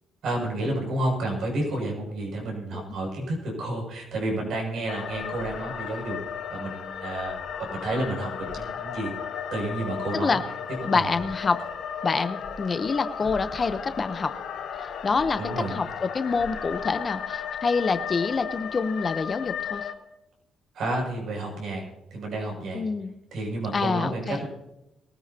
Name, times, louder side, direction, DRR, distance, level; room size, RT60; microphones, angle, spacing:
voice 1, 0.2-6.2 6.5-7.4 7.7-9.1 9.5-10.4 10.9-11.1 15.4-15.7 20.7-21.8 22.1-22.8 23.3-24.5, right 1 dB, 70° right, 0 dB, 6.6 m, -30 dB
sound 1, 4.9-19.9, left 7 dB, 75° left, 1.5 m, -35 dB
voice 2, 10.9-11.6 12.0-14.3 15.0-19.9 22.7-23.1 23.7-24.4, left 4 dB, 35° left, 11 dB, 0.9 m, -26 dB
22.0 x 14.0 x 2.9 m, 0.92 s
cardioid pair, 90°, 0 cm